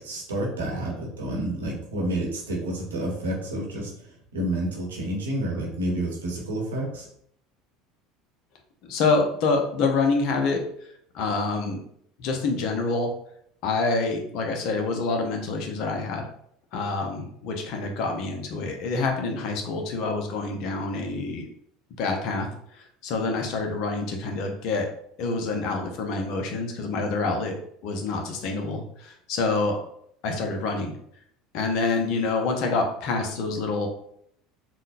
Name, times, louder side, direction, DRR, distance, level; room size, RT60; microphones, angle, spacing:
voice 1, 0.0-7.1, right 1 dB, 80° right, -2 dB, 0.9 m, -29 dB
voice 2, 8.8-10.6 11.1-11.8 12.2-13.1 13.6-16.2 16.7-21.5 22.0-22.5 22.7-24.9 25.2-27.6 27.8-29.8 30.2-30.9 31.5-33.9, left 3 dB, 55° left, 3 dB, 0.6 m, -26 dB
3.7 x 2.1 x 2.5 m, 0.68 s
hypercardioid pair, 70°, 0 cm